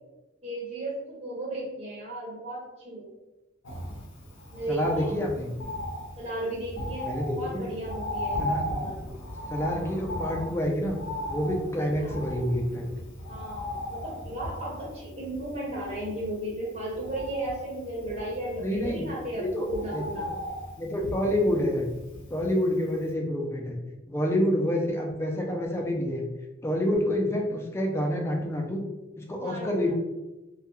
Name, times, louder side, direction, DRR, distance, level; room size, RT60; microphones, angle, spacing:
voice 1, 0.4-3.1 4.5-5.1 6.2-9.1 12.0-12.2 13.3-20.3 29.4-29.9, right 1 dB, 35° right, -6 dB, 0.6 m, -35 dB
Bird, 3.6-22.8 23.1-23.2, left 1 dB, 85° left, 0.6 m, -37 dB
voice 2, 4.7-5.5 7.0-7.7 8.4-8.6 9.5-11.0 11.3-12.9 18.6-19.0 19.4-20.3 20.8-21.9 22.3-23.8 24.1-26.3 26.6-28.8 29.2-29.9, left 1 dB, 15° left, 0 dB, 0.3 m, -28 dB
2.2 x 2.1 x 2.9 m, 1.1 s
head